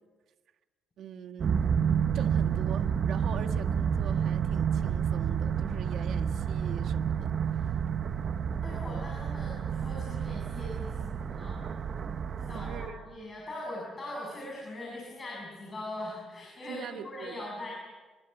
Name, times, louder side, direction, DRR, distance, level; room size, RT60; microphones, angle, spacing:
voice 1, 1.0-1.6 2.1-7.8 12.5-13.0 16.7-17.5, right 8 dB, 55° right, 1.7 m, -43 dB
sound 1, 1.4-12.9, right 7 dB, 40° right, 1.2 m, -30 dB
voice 2, 8.6-11.6 12.4-17.7, left 1 dB, 20° left, 7.9 m, -41 dB
29.0 x 23.0 x 8.2 m
cardioid pair, 165°, 0 cm